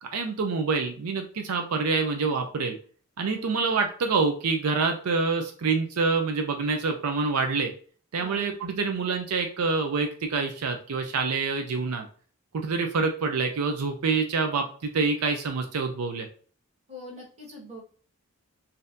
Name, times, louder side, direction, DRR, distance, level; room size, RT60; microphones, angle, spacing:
voice 1, 0.0-2.7 3.2-7.7 8.1-12.0 12.5-16.3, right 4 dB, 85° right, 5 dB, 0.5 m, -26 dB
voice 2, 3.3-3.8 8.2-8.5 16.9-17.8, equal, 30° right, -4 dB, 1.4 m, -44 dB
4.1 x 2.7 x 2.6 m, 0.43 s
head